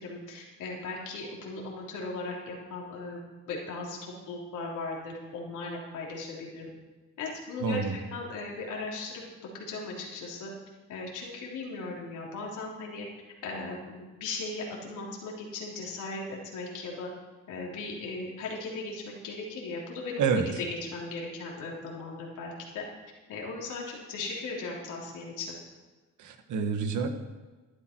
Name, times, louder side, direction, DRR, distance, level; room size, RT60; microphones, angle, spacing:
voice 1, 0.0-3.2 3.5-6.7 7.2-9.2 9.7-10.5 10.9-13.1 13.4-17.1 17.5-20.2 20.6-22.8 23.3-25.5, left 3 dB, 80° left, -3 dB, 3.3 m, -37 dB
voice 2, 7.6-8.0 20.2-20.5 26.2-27.1, right 5 dB, 75° right, 7 dB, 1.5 m, -27 dB
12.5 x 11.5 x 4.5 m, 1.3 s
cardioid pair, 90°, 30 cm